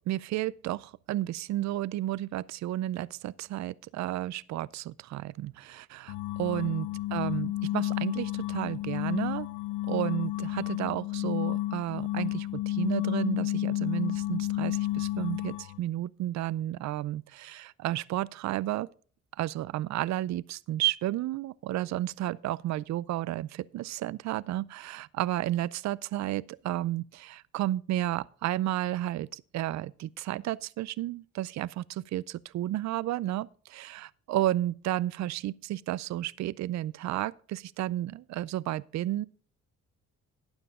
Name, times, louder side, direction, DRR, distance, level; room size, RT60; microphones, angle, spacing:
voice 1, 0.0-6.9 7.1-9.5 9.9-18.9 19.4-39.3, right 14 dB, 65° right, 0.5 m, -32 dB
sound 1, 6.1-15.8, left 16 dB, 85° left, 0.6 m, -31 dB
12.5 x 9.0 x 3.7 m
cardioid pair, 90°, 30 cm